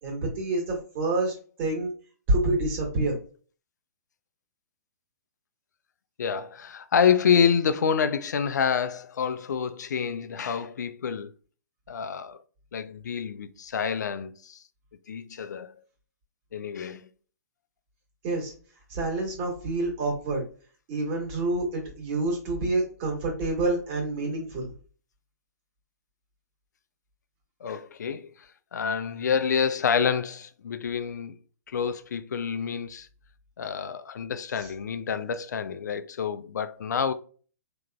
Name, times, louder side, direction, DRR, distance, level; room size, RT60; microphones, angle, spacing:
voice 1, 0.0-1.9 2.3-3.2 18.2-18.5 18.9-20.4 20.9-24.7 34.5-34.7, right 2 dB, 40° right, 1.6 m, -27 dB
voice 2, 6.2-11.3 11.9-12.4 12.7-14.6 15.1-15.7 16.5-17.1 27.6-28.3 28.7-31.4 31.7-33.1 33.6-37.1, left 7 dB, 75° left, 0.4 m, -27 dB
3.6 x 2.9 x 2.4 m
hypercardioid pair, 130°, 9 cm